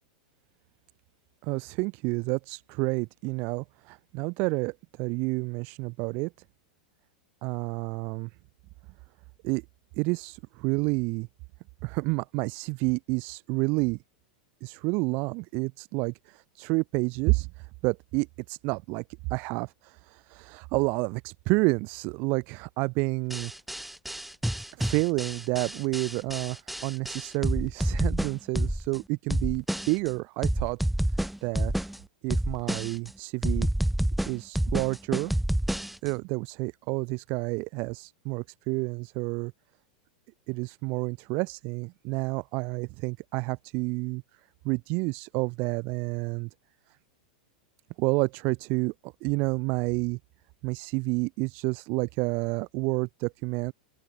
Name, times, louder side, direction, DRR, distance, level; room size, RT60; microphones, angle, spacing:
voice 1, 1.4-6.3 7.4-8.3 9.4-9.6 10.0-11.3 11.8-14.0 14.6-17.5 17.8-19.0 19.3-23.5 24.8-30.8 31.4-31.7 32.2-33.7 34.3-35.3 36.0-39.5 40.5-44.2 44.6-46.5 48.0-50.2 50.6-53.7, right 28 dB, 45° right, 3.3 m, -29 dB
sound 1, 23.3-29.0 29.3-30.1 30.4-32.0 32.3-33.1 33.4-36.1, right 1 dB, ahead, 2.0 m, -29 dB
open air
figure-of-eight pair, 90°, 4 cm